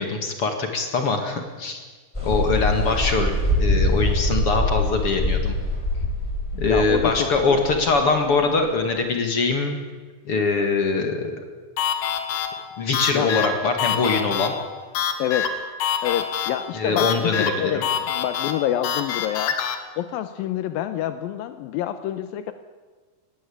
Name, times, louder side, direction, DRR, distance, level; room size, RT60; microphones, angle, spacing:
voice 1, 0.0-1.8 2.2-5.6 6.6-9.8 10.3-11.4 12.8-14.5 16.7-17.9, left 4 dB, 45° left, 5 dB, 2.3 m, -23 dB
sound 1, 2.1-8.8, left 1 dB, 10° left, 3.9 m, -24 dB
voice 2, 6.5-7.6 13.1-13.3 15.2-15.6 16.0-19.5 20.0-22.5, left 11 dB, 80° left, 10 dB, 2.6 m, -27 dB
sound 2, 11.8-19.8, left 8 dB, 65° left, 2.6 m, -27 dB
19.5 x 16.5 x 8.6 m, 1.4 s
omnidirectional pair, 4.2 m